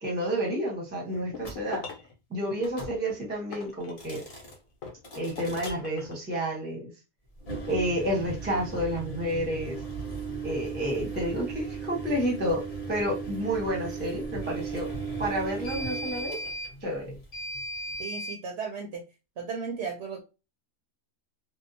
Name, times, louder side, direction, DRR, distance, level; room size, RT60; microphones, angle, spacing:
voice 1, 0.0-1.8 2.3-4.2 5.1-6.9 7.7-9.8 10.4-12.6 12.9-14.9 15.2-16.4 16.8-17.0, equal, 10° right, -1 dB, 0.7 m, -30 dB
sound 1, 1.1-2.1 2.8-4.4 4.8-6.2, left 5 dB, 85° left, 1.1 m, -41 dB
sound 2, 1.4-1.6 2.6-3.0 3.9-4.6 5.0-5.8 7.3-18.4, right 3 dB, 35° left, 0.6 m, -36 dB
voice 2, 18.0-19.0 19.4-20.2, right 5 dB, 65° right, 2 dB, 0.8 m, -35 dB
2.7 x 2.0 x 2.6 m, 0.28 s
omnidirectional pair, 1.4 m